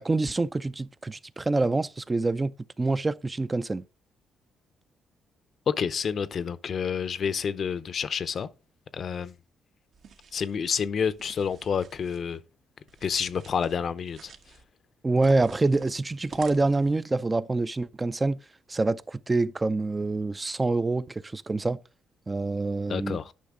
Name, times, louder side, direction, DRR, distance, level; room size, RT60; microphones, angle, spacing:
voice 1, 0.0-3.8 15.0-18.4 18.7-21.8 22.3-23.2, right 3 dB, 20° right, 0.4 m, -26 dB
voice 2, 5.7-8.5 8.9-9.3 10.3-12.4 13.0-14.3 22.9-23.3, left 7 dB, 55° left, 0.6 m, -29 dB
sound 1, 9.9-10.6 11.1-12.2 12.9-13.8 14.1-14.6 15.2-17.0, right 6 dB, 65° right, 1.0 m, -49 dB
10.5 x 5.5 x 3.7 m
cardioid pair, 90°, 0 cm